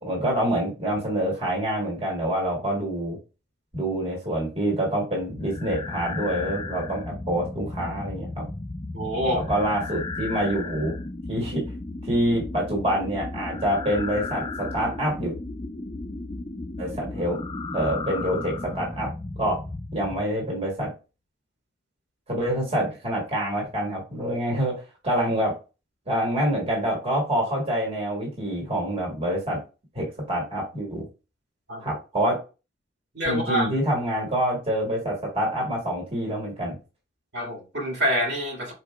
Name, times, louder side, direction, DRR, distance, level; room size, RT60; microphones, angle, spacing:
voice 1, 0.0-3.2 3.7-8.5 9.3-10.9 11.3-11.6 12.1-15.3 16.8-17.4 17.7-19.1 19.4-19.6 19.9-20.9 22.3-24.7 25.0-25.5 26.1-29.6 29.9-31.0 31.8-32.4 33.2-36.7, right 1 dB, 30° right, 1.7 m, -26 dB
sound 1, 5.3-20.2, left 2 dB, 25° left, 0.4 m, -34 dB
voice 2, 8.9-9.4 31.7-32.0 33.1-33.7 37.3-38.7, equal, 65° right, 2.2 m, -26 dB
4.8 x 4.6 x 2.3 m
head